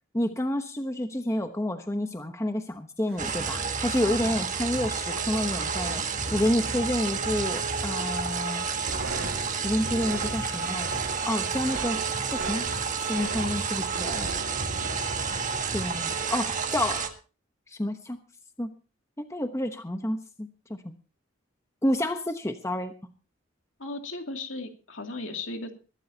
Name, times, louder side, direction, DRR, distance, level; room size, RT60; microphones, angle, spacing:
voice 1, 0.1-8.7 9.6-11.0 11.2-12.0 12.3-12.7 13.1-14.3 15.7-17.1 17.7-18.2 18.6-18.7 19.2-20.9 21.8-22.9, left 1 dB, 15° left, 6 dB, 1.0 m, -29 dB
sound 1, 3.1-13.6, right 3 dB, 55° right, 6.8 m, -50 dB
sound 2, 3.2-17.1, right 5 dB, 40° right, 1.6 m, -30 dB
sound 3, 8.6-16.6, right 2 dB, 85° right, 3.2 m, -39 dB
voice 2, 23.8-25.7, left 2 dB, 70° left, 4 dB, 2.6 m, -36 dB
22.0 x 12.5 x 2.8 m, 0.34 s
head